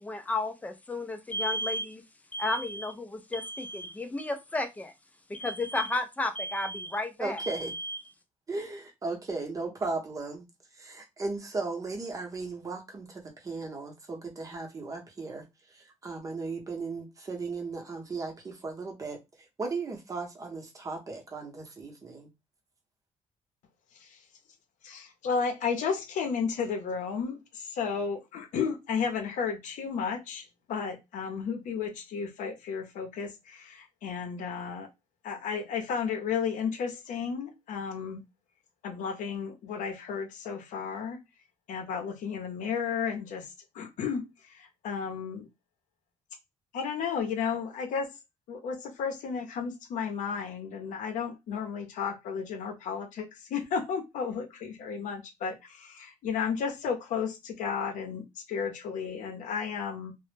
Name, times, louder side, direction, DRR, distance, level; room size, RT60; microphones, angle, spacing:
voice 1, 0.0-2.0 2.3-4.9 5.3-8.0, left 1 dB, 10° left, 0.3 m, -32 dB
voice 2, 7.2-7.7 8.5-10.5 10.7-15.4 15.7-19.2 19.6-22.3, right 3 dB, 25° right, 0.7 m, -36 dB
voice 3, 24.8-34.9 35.2-38.2 38.8-41.2 41.7-43.5 43.7-45.5 46.7-48.1 48.5-60.1, left 6 dB, 80° left, 0.6 m, -33 dB
2.0 x 2.0 x 3.1 m
cardioid pair, 145°, 13 cm